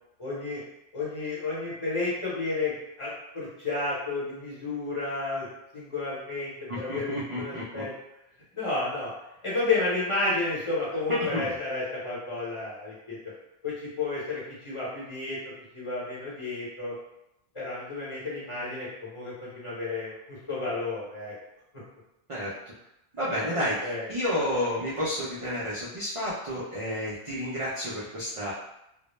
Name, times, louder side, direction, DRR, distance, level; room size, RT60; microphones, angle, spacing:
voice 1, 0.2-0.6 0.9-5.4 5.7-7.1 7.4-7.9 8.5-9.1 9.4-13.2 13.6-15.4 15.7-16.9 17.5-21.3 23.5-24.1, left 3 dB, 30° left, -8 dB, 0.8 m, -31 dB
voice 2, 6.7-7.8 11.1-11.5 22.3-22.5 23.1-28.5, left 1 dB, 55° right, -7 dB, 0.4 m, -30 dB
2.1 x 2.0 x 3.0 m, 0.84 s
omnidirectional pair, 1.1 m